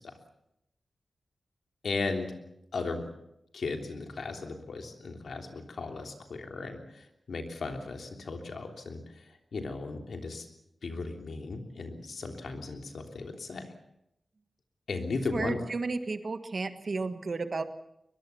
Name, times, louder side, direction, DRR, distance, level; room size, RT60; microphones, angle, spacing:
voice 1, 1.8-2.3 2.7-3.1 3.5-10.5 10.8-13.6 14.9-15.6, left 3 dB, 75° left, 4 dB, 3.3 m, -36 dB
voice 2, 15.3-17.6, right 3 dB, 50° right, 9 dB, 1.6 m, -33 dB
22.5 x 22.0 x 7.1 m, 0.81 s
wide cardioid pair, 125°, 0 cm